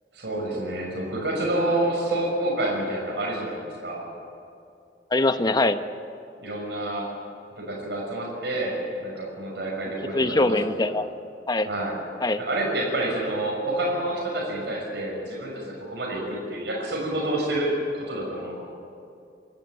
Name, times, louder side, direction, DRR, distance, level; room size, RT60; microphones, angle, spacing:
voice 1, 0.1-4.0 6.4-7.1 7.6-10.7 11.6-12.0 12.4-18.7, right 1 dB, 75° right, -2 dB, 6.2 m, -28 dB
voice 2, 5.1-5.8 10.1-11.1 11.5-11.7 12.2-12.4, left 2 dB, 25° left, 10 dB, 0.9 m, -22 dB
26.5 x 13.5 x 9.5 m, 2.5 s
head